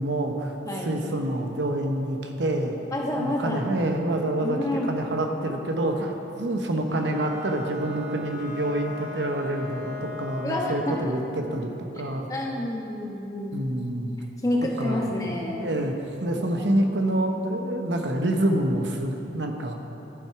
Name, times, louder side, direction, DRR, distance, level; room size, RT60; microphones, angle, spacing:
voice 1, 0.0-0.5 0.8-2.8 3.2-4.6 4.9-12.3 13.5-14.1 14.8-15.1 15.6-15.9 16.2-19.8, right 1 dB, 70° right, 3 dB, 0.9 m, -27 dB
voice 2, 0.6-1.0 2.9-3.6 4.4-4.9 10.4-11.1 12.3-13.6 14.4-15.7 16.3-16.7, left 1 dB, 20° left, -2 dB, 1.1 m, -29 dB
Bowed string instrument, 6.8-11.1, left 3 dB, 20° right, 2.4 m, -38 dB
11.5 x 7.5 x 4.8 m, 3.0 s
head